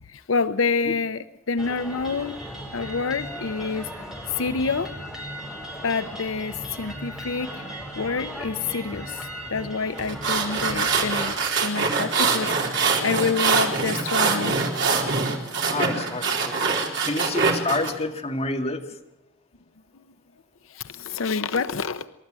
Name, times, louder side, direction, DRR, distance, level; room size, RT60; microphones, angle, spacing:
voice 1, 0.1-2.4 2.7-3.9 4.3-4.9 5.8-7.6 8.0-14.5 19.9-20.0 20.7-22.0, left 4 dB, 85° left, 11 dB, 0.7 m, -28 dB
sound 1, 1.6-11.3, equal, 5° right, 4.9 m, -37 dB
sound 2, 10.0-17.9, right 4 dB, 65° right, 4.1 m, -24 dB
voice 2, 15.7-16.6 17.0-18.8, left 2 dB, 30° left, 2 dB, 2.1 m, -28 dB
29.0 x 13.0 x 7.6 m, 0.98 s
head